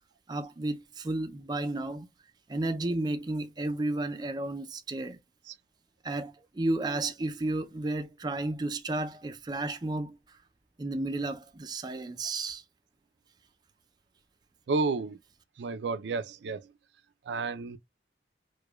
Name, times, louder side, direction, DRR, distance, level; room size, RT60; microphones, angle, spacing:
voice 1, 0.3-2.1 2.5-5.2 6.0-10.4 10.8-12.6, right 2 dB, 25° right, 0.4 m, -32 dB
voice 2, 14.7-15.2 15.6-16.7 17.3-17.8, right 4 dB, 85° right, 0.4 m, -31 dB
4.8 x 2.2 x 2.2 m
head